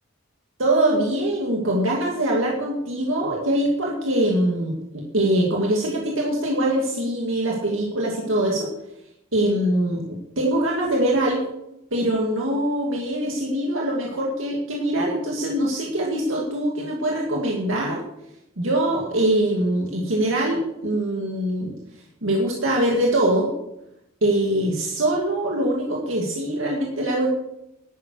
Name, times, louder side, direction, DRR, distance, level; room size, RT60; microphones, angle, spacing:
voice 1, 0.6-8.7 9.3-11.4 11.9-18.0 18.6-21.7 22.2-23.5 24.2-27.3, right 1 dB, 80° right, -1 dB, 2.2 m, -23 dB
11.5 x 9.5 x 6.2 m, 0.84 s
head